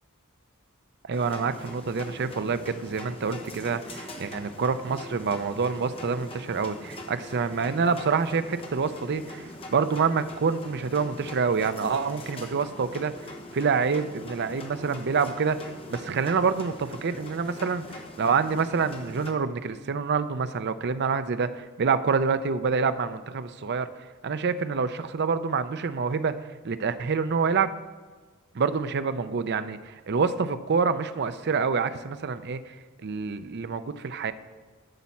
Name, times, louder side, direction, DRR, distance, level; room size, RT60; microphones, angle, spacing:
sound 1, 1.1-19.3, left 1 dB, 25° left, 1.1 m, -43 dB
voice 1, 1.1-13.1 13.5-17.8 18.2-23.9 24.2-26.3 26.6-27.7 28.5-32.7 33.0-34.3, right 5 dB, 50° right, 11 dB, 0.5 m, -27 dB
12.0 x 4.2 x 7.0 m, 1.4 s
head